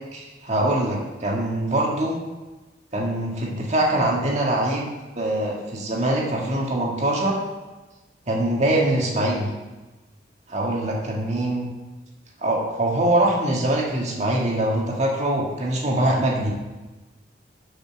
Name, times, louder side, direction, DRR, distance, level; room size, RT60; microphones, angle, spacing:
voice 1, 0.1-2.2 2.9-4.9 5.2-7.4 8.3-9.5 10.5-11.7 12.4-16.5, right 1 dB, 40° right, -2 dB, 1.8 m, -23 dB
7.5 x 5.6 x 5.8 m, 1.2 s
head